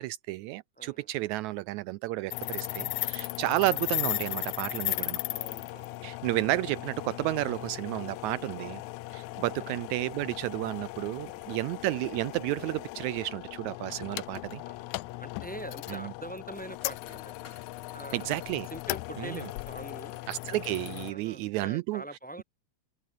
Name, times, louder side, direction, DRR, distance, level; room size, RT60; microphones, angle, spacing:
voice 1, 0.0-5.2 6.0-8.8 9.1-14.6 18.1-18.7 19.2-19.3 20.3-22.0, right 18 dB, 90° right, 1.6 m, -31 dB
voice 2, 0.8-1.1 2.3-2.6 5.3-6.1 8.6-8.9 9.5-9.7 11.1-11.6 14.6-17.3 17.9-18.3 18.7-20.2 21.0-22.4, right 1 dB, 5° left, 2.7 m, -45 dB
sound 1, 2.3-21.1, left 20 dB, 80° left, 1.7 m, -37 dB
sound 2, 12.8-19.9, left 5 dB, 30° left, 2.2 m, -60 dB
omnidirectional pair, 3.8 m